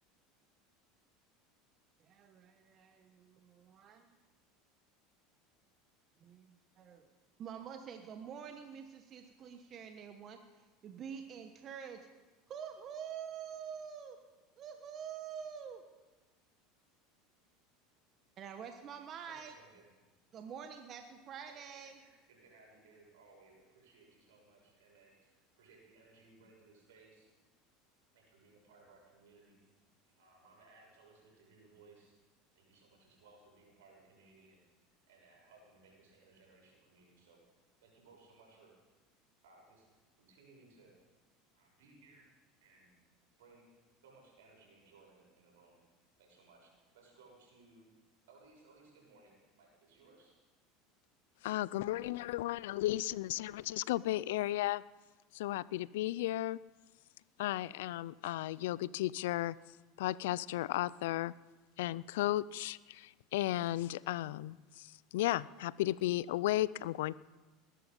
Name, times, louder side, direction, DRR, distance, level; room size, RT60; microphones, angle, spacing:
voice 1, 2.0-4.1 6.2-7.1 7.4-12.1 12.5-14.2 14.6-15.8 18.4-19.5 20.3-22.0, right 7 dB, 40° right, 6 dB, 1.3 m, -47 dB
voice 2, 19.3-19.9 21.5-21.6 21.9-27.3 28.1-29.7 30.0-32.1 32.5-34.6 35.1-37.4 37.8-38.7 39.4-39.9 40.2-40.9 41.5-42.4 42.6-42.9 43.4-43.7 44.0-45.8 46.2-47.8 48.3-50.3, right 3 dB, 85° right, -1 dB, 6.6 m, -62 dB
voice 3, 51.4-54.8 55.3-56.6 57.4-59.6 60.0-61.3 61.8-67.2, left 15 dB, 80° left, 20 dB, 0.4 m, -34 dB
20.5 x 11.0 x 5.4 m, 1.2 s
hypercardioid pair, 100°, 0 cm